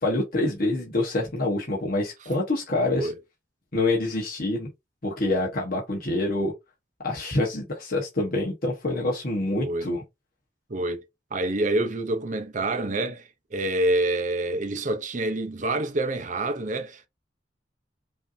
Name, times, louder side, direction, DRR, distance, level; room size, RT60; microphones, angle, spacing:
voice 1, 0.0-3.1 3.7-4.7 5.0-6.5 7.0-10.0, left 2 dB, 55° left, 1.2 m, -26 dB
voice 2, 9.6-9.9 10.7-11.0 11.3-13.2 13.5-17.1, right 2 dB, 45° right, 0.7 m, -27 dB
5.4 x 2.8 x 2.6 m
head